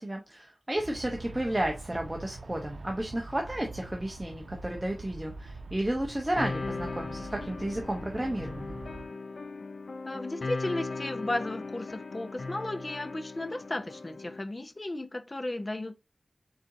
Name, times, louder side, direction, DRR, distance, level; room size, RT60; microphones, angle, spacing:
voice 1, 0.0-8.8, right 1 dB, 20° right, 0.8 m, -32 dB
Aircraft, 0.7-9.1, right 3 dB, 80° right, 0.6 m, -44 dB
sound 1, 6.4-14.4, left 3 dB, 80° left, 0.5 m, -38 dB
voice 2, 10.0-16.0, left 1 dB, 35° left, 0.6 m, -34 dB
4.4 x 3.8 x 2.6 m
wide cardioid pair, 70°, 0 cm